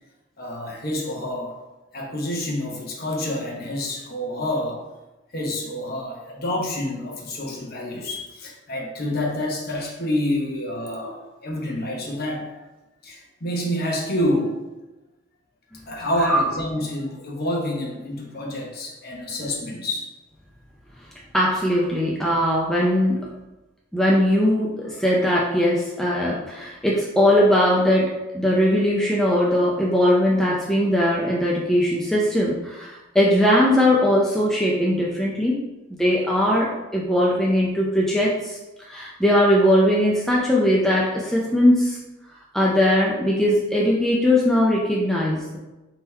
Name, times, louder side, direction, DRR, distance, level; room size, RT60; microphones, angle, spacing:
voice 1, 0.4-1.6 1.9-4.8 5.3-12.6 13.0-14.6 15.9-20.1, left 1 dB, 45° left, -1 dB, 0.9 m, -28 dB
voice 2, 21.3-23.2 23.9-35.6 35.9-38.6 38.9-42.0 42.5-45.6, equal, ahead, -4 dB, 0.4 m, -20 dB
3.7 x 3.0 x 4.3 m, 1.0 s
head